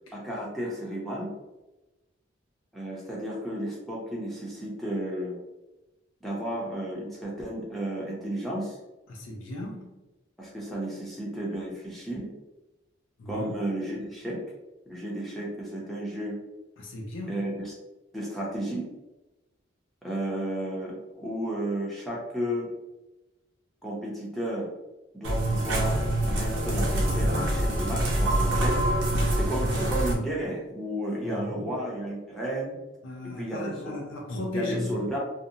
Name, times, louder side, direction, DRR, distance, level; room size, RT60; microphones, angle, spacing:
voice 1, 0.1-1.3 2.7-5.4 6.2-8.8 10.4-12.3 13.3-14.4 14.9-16.4 17.3-17.7 18.1-18.9 20.0-22.7 23.8-24.7 25.1-26.0 26.3-28.8 29.3-32.8 33.2-34.0 34.5-35.2, right 1 dB, ahead, -5 dB, 0.5 m, -33 dB
voice 2, 9.1-10.0 13.2-13.6 16.8-17.5 31.2-31.7 33.0-35.0, left 2 dB, 80° left, 0 dB, 0.5 m, -36 dB
sound 1, 25.2-30.1, right 1 dB, 70° right, 0.7 m, -25 dB
2.6 x 2.0 x 2.7 m, 1.0 s
head